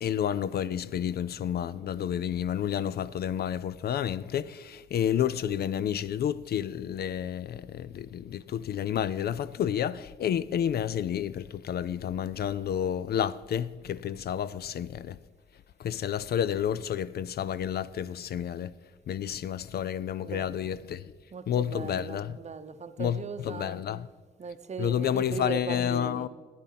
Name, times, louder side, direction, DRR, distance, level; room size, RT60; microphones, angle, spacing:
voice 1, 0.0-15.2 15.8-18.7 19.1-21.0 21.5-22.4 23.0-24.1 24.8-26.3, left 9 dB, 55° left, 0.4 m, -30 dB
voice 2, 20.2-20.7 21.3-23.8 24.4-26.3, right 5 dB, 35° right, 0.8 m, -38 dB
12.0 x 9.4 x 5.7 m
cardioid pair, 90°, 20 cm